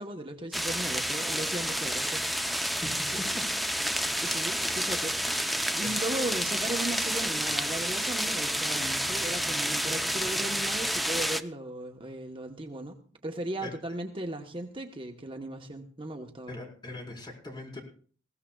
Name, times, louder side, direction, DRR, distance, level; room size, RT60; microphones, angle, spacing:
voice 1, 0.0-2.8 3.1-3.2 4.2-5.5 5.8-13.0 13.2-16.5, right 1 dB, 30° right, 4 dB, 1.0 m, -37 dB
sound 1, 0.5-11.4, equal, ahead, 0.6 m, -30 dB
voice 2, 16.5-17.8, left 2 dB, 25° left, 0 dB, 4.3 m, -40 dB
21.0 x 16.0 x 2.3 m, 0.43 s
head